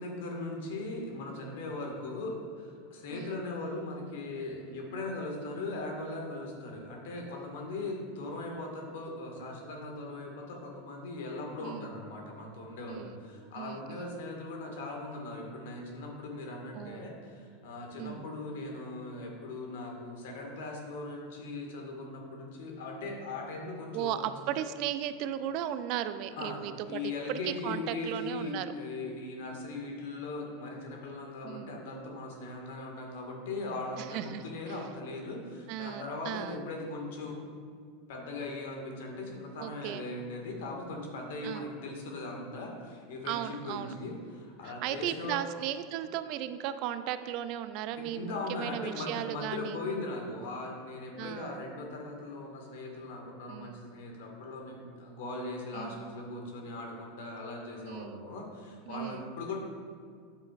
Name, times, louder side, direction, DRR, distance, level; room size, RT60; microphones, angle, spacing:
voice 1, 0.0-24.3 26.4-37.4 38.1-45.4 47.9-59.6, left 2 dB, 65° left, 0 dB, 1.8 m, -39 dB
voice 2, 11.6-12.0 12.9-13.2 13.6-14.1 16.8-17.2 18.0-18.3 23.9-28.7 31.4-31.8 34.0-34.8 35.7-36.7 39.6-40.0 41.4-41.7 43.3-43.9 44.6-49.8 51.2-51.6 53.5-53.8 55.7-56.1 57.8-58.2 58.9-59.6, right 11 dB, 55° right, 12 dB, 0.4 m, -36 dB
9.7 x 8.0 x 2.5 m, 2.1 s
figure-of-eight pair, 85°, 0 cm